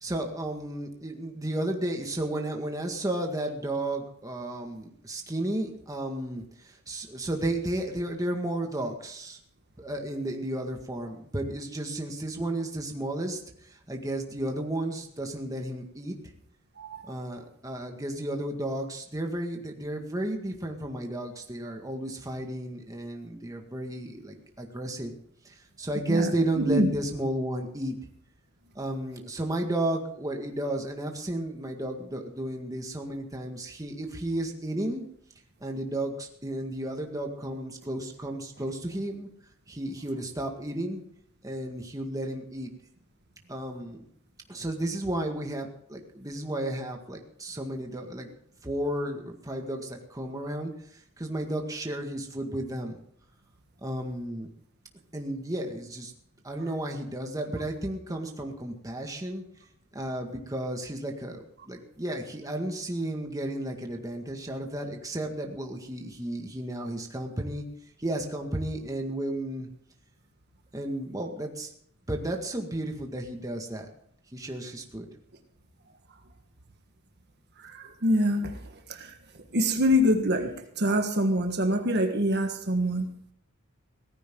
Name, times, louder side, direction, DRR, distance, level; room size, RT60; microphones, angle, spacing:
voice 1, 0.0-9.4 9.8-16.2 17.1-25.1 25.5-28.0 28.8-35.1 35.6-39.3 39.7-41.0 41.4-42.7 43.5-44.0 44.5-48.3 48.6-50.7 51.2-53.0 53.8-54.5 55.1-56.1 56.4-59.4 59.9-67.6 68.0-69.7 70.7-71.7 72.1-73.9 74.3-75.1, right 1 dB, 15° right, 2 dB, 1.9 m, -33 dB
voice 2, 26.6-26.9 77.6-79.1 79.5-83.1, equal, 55° right, 5 dB, 1.5 m, -25 dB
18.0 x 15.0 x 3.8 m, 0.67 s
head